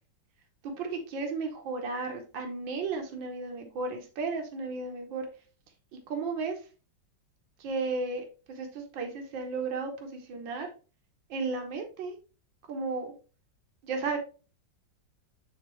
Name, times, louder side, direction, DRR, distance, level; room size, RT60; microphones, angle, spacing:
voice 1, 0.6-5.3 5.9-6.6 7.6-10.7 11.3-12.2 12.7-13.1 13.8-14.2, right 4 dB, 85° right, 4 dB, 1.8 m, -34 dB
9.2 x 3.6 x 3.1 m, 0.34 s
omnidirectional pair, 2.0 m